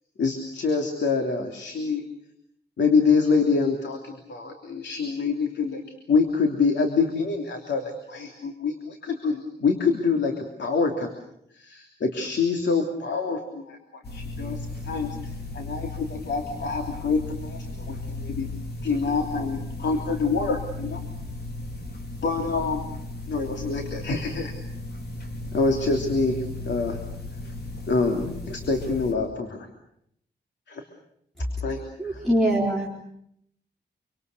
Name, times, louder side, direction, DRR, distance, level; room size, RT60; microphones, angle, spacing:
voice 1, 0.2-2.0 2.8-5.8 6.1-11.1 11.5-15.2 15.5-18.5 18.8-21.0 22.2-22.9 23.3-24.5 25.5-27.0 27.4-27.5 27.9-29.7 30.7-30.8 31.6-32.3, left 4 dB, 80° left, 4 dB, 3.2 m, -26 dB
sound 1, 14.0-29.1, left 2 dB, 65° left, 5.2 m, -35 dB
voice 2, 32.0-32.9, right 1 dB, ahead, -3 dB, 4.3 m, -23 dB
26.5 x 25.5 x 6.8 m, 0.71 s
wide cardioid pair, 115°, 18 cm